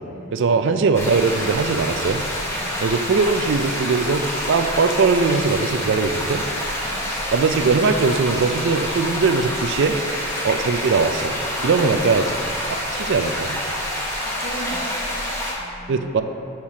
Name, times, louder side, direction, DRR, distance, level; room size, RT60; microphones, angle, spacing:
voice 1, 0.3-2.2 2.8-6.4 7.3-10.0 10.4-11.4 11.6-12.3 12.7-13.6 15.9-16.2, right 4 dB, 55° right, 8 dB, 0.3 m, -20 dB
sound 1, 0.9-15.5, equal, 10° left, 0.9 m, -27 dB
voice 2, 11.5-11.9 13.6-13.7 14.2-14.9 15.5-16.0, equal, 35° left, -7 dB, 1.4 m, -35 dB
7.2 x 4.4 x 4.8 m, 2.6 s
head